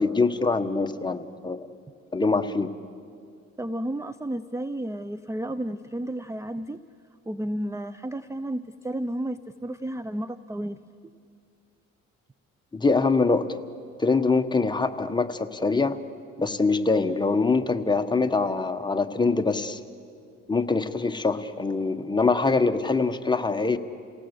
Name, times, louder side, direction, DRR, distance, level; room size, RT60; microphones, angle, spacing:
voice 1, 0.0-1.6 2.1-2.7 12.7-13.6 14.0-16.0 16.4-19.8 20.5-23.8, left 3 dB, 15° left, 7 dB, 1.2 m, -24 dB
voice 2, 3.6-6.8 7.3-10.8, right 1 dB, 10° right, 13 dB, 0.5 m, -32 dB
28.5 x 18.0 x 8.1 m, 2.3 s
cardioid pair, 90°, 30 cm